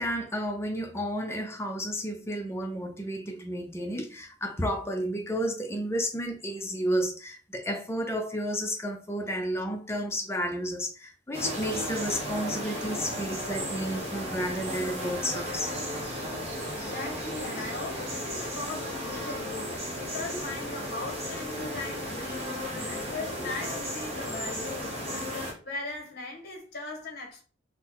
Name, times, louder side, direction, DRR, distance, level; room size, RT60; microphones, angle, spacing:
voice 1, 0.0-15.7 22.8-22.9, equal, 10° left, 0.4 m, -32 dB
sound 1, 11.3-25.5, equal, 30° right, 0.8 m, -34 dB
voice 2, 16.7-27.4, left 2 dB, 50° left, 0.9 m, -39 dB
3.8 x 2.1 x 3.0 m
head